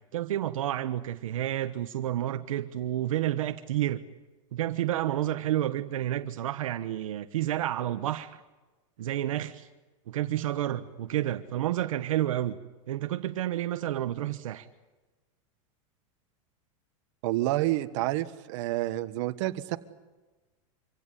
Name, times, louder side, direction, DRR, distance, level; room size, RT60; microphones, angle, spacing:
voice 1, 0.1-4.0 4.5-8.4 9.0-9.7 10.1-12.6 12.9-14.7, right 13 dB, 90° right, 9 dB, 1.2 m, -30 dB
voice 2, 17.2-19.8, right 16 dB, 60° right, 10 dB, 1.6 m, -29 dB
26.0 x 16.5 x 9.9 m, 1.2 s
supercardioid pair, 135°, 17 cm